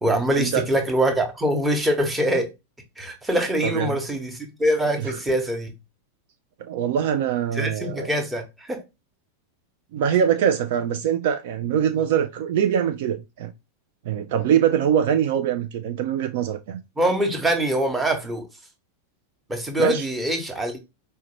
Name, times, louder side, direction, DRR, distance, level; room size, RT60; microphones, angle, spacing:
voice 1, 0.0-2.5 3.0-5.7 7.5-8.8 17.0-18.5 19.5-20.8, right 1 dB, 10° right, 0.9 m, -24 dB
voice 2, 3.6-4.0 5.0-5.2 6.7-8.1 9.9-13.5 14.1-16.8 19.8-20.0, right 9 dB, 50° right, 0.3 m, -23 dB
4.5 x 2.1 x 3.0 m
figure-of-eight pair, 90°, 0 cm